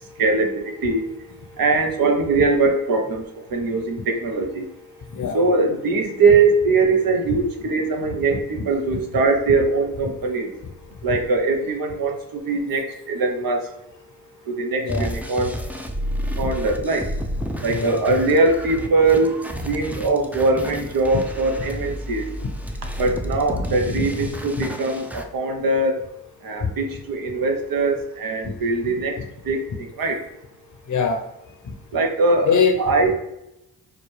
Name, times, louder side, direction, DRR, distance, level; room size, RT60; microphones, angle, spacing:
voice 1, 0.2-1.0 1.6-3.2 3.5-4.6 5.3-10.5 11.0-13.7 14.5-15.5 16.4-17.1 17.6-19.3 19.7-22.3 23.0-26.0 26.4-29.1 29.5-30.2 31.9-33.1, right 3 dB, 65° right, 4 dB, 0.9 m, -21 dB
sound 1, 14.9-25.2, equal, 5° right, 0.5 m, -31 dB
voice 2, 30.9-31.2 32.5-32.8, left 5 dB, 50° left, 5 dB, 0.8 m, -21 dB
5.8 x 2.2 x 3.2 m, 0.87 s
cardioid pair, 55°, 37 cm